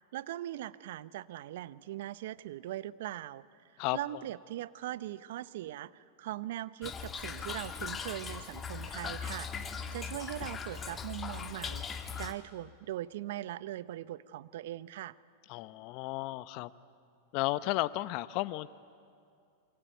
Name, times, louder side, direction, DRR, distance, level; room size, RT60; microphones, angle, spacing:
voice 1, 0.1-3.5 3.7-9.5 9.9-15.2, right 14 dB, 65° right, 17 dB, 0.8 m, -40 dB
Toilet flush / Trickle dribble, 6.8-12.3, left 6 dB, 25° left, 1.9 m, -39 dB
voice 2, 15.5-16.7 17.3-18.7, left 18 dB, 50° left, 15 dB, 0.8 m, -33 dB
27.5 x 23.5 x 9.3 m, 2.3 s
hypercardioid pair, 105°, 0 cm